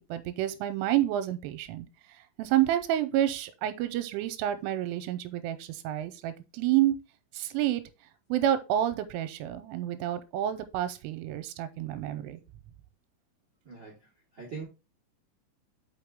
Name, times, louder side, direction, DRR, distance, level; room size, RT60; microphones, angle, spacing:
voice 1, 0.0-1.9 2.4-7.0 7.3-7.8 8.3-12.4, right 12 dB, 85° right, 3.2 m, -29 dB
voice 2, 13.6-14.1 14.3-14.7, right 5 dB, 60° right, 1.2 m, -41 dB
6.0 x 5.9 x 3.5 m
omnidirectional pair, 5.7 m